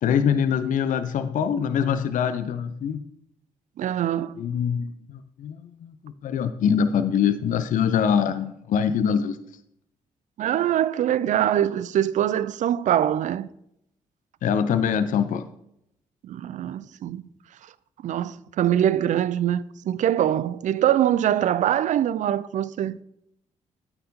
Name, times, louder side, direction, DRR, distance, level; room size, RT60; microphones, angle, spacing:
voice 1, 0.0-3.0 4.4-9.4 14.4-15.5, left 7 dB, 55° left, 0.6 m, -24 dB
voice 2, 3.8-4.4 10.4-13.5 16.2-17.2 18.0-23.0, right 11 dB, 50° right, 0.4 m, -23 dB
12.5 x 4.4 x 2.8 m
hypercardioid pair, 40°, 16 cm